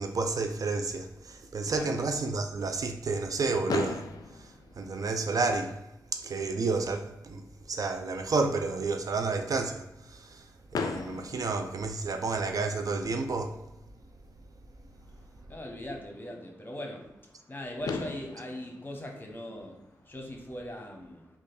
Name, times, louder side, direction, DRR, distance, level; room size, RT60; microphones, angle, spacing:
voice 1, 0.0-4.1 4.8-5.8 6.1-7.4 7.7-10.4 10.7-13.6, right 3 dB, 60° right, 0.4 m, -30 dB
Fireworks, 3.7-5.7 6.5-6.6 6.8-7.0 7.3-7.4 10.7-12.6 14.3-14.4 17.4-17.5 17.8-20.1, left 5 dB, 70° left, 0.3 m, -38 dB
voice 2, 15.0-21.4, left 1 dB, 30° left, 1.0 m, -41 dB
3.1 x 2.4 x 4.1 m
cardioid pair, 45°, 7 cm